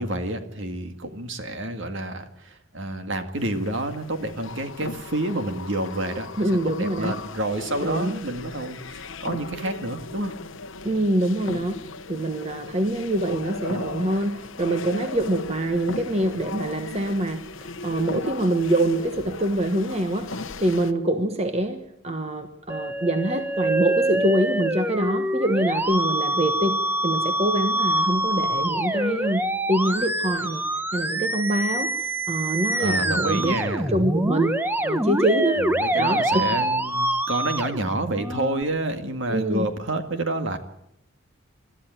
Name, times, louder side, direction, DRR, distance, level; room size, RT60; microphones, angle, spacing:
voice 1, 0.0-10.3 32.8-33.9 35.6-40.6, right 1 dB, 60° right, 6 dB, 2.1 m, -29 dB
sound 1, 3.4-20.9, left 3 dB, 65° left, 1.0 m, -37 dB
voice 2, 6.4-7.1 7.8-8.1 10.8-11.8 12.1-30.6 30.9-34.6 34.8-35.6 36.0-36.6 39.3-39.7, right 1 dB, 30° right, 6 dB, 1.3 m, -25 dB
Musical instrument, 22.7-38.6, right 1 dB, 10° right, 0.8 m, -25 dB
21.5 x 13.5 x 9.1 m, 0.81 s
head